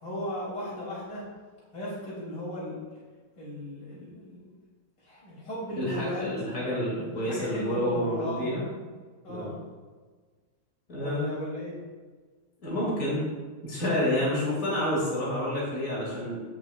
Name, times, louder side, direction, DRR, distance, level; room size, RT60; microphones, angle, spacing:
voice 1, 0.0-1.2 1.7-2.8 3.4-4.5 5.0-6.6 7.1-8.5 9.2-9.5 11.0-11.7, left 1 dB, 85° left, -7 dB, 3.7 m, -36 dB
voice 2, 5.8-8.6 9.3-9.5 10.9-11.3 12.6-13.3 13.6-16.4, left 1 dB, 50° left, -6 dB, 3.0 m, -29 dB
16.0 x 5.9 x 2.5 m, 1.4 s
omnidirectional pair, 1.8 m